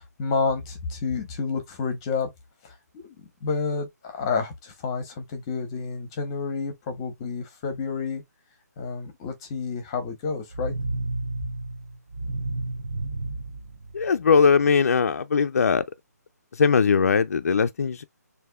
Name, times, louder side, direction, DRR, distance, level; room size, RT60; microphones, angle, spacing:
voice 1, 0.0-2.3 2.6-8.2 8.8-10.7, left 4 dB, 15° left, 0.8 m, -30 dB
sound 1, 10.5-14.5, right 2 dB, 50° right, 0.6 m, -32 dB
voice 2, 13.9-15.8 16.6-18.0, left 5 dB, 55° left, 0.4 m, -20 dB
6.4 x 2.6 x 2.3 m
hypercardioid pair, 180°, 9 cm